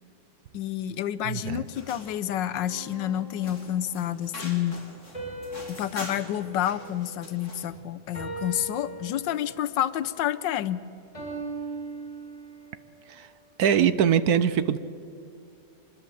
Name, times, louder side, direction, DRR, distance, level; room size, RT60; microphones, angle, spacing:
voice 1, 0.5-4.8 5.7-10.8, left 11 dB, 90° left, 13 dB, 1.5 m, -29 dB
voice 2, 1.3-1.6 13.2-13.3 13.6-14.8, right 8 dB, 65° right, 14 dB, 1.2 m, -22 dB
sound 1, 1.6-7.8, left 2 dB, 45° left, 3.3 m, -44 dB
sound 2, 2.7-4.1 5.1-7.6 8.1-9.7 11.1-12.8, right 2 dB, 15° left, 6.8 m, -40 dB
23.5 x 21.0 x 7.6 m, 2.6 s
omnidirectional pair, 1.9 m